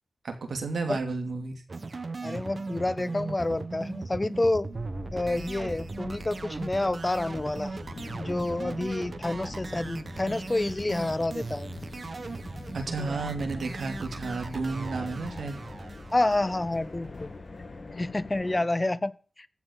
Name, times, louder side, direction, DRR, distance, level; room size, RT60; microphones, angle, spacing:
voice 1, 0.2-1.6 12.7-15.6, right 3 dB, 90° right, 6 dB, 2.7 m, -32 dB
sound 1, 1.7-17.1, right 3 dB, 50° right, 1.2 m, -38 dB
voice 2, 2.2-4.7 5.1-7.8 8.1-11.7 16.1-17.3 18.0-19.5, left 2 dB, 25° left, 17 dB, 0.7 m, -28 dB
sound 2, 4.7-18.6, left 3 dB, 45° left, 1.8 m, -44 dB
15.5 x 6.0 x 8.4 m, 0.39 s
wide cardioid pair, 100°, 0 cm